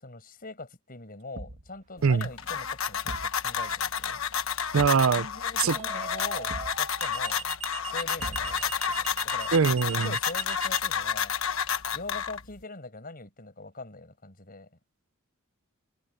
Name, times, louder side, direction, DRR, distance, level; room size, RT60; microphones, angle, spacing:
voice 1, 0.0-4.2 5.1-7.5 7.9-9.5 10.0-11.4 11.9-14.7, left 3 dB, 45° left, 6.5 m, -42 dB
Thump thud, 1.3-1.8 3.1-3.4 4.8-5.1 6.5-6.8 8.2-8.8, right 1 dB, 55° right, 1.3 m, -40 dB
sound 1, 2.0-12.6, left 7 dB, 70° left, 1.3 m, -30 dB
sound 2, 2.4-2.8 5.7-10.8, right 7 dB, 35° right, 1.5 m, -39 dB
voice 2, 4.7-5.3 5.6-5.8 9.5-10.1, right 5 dB, 70° right, 0.5 m, -22 dB
head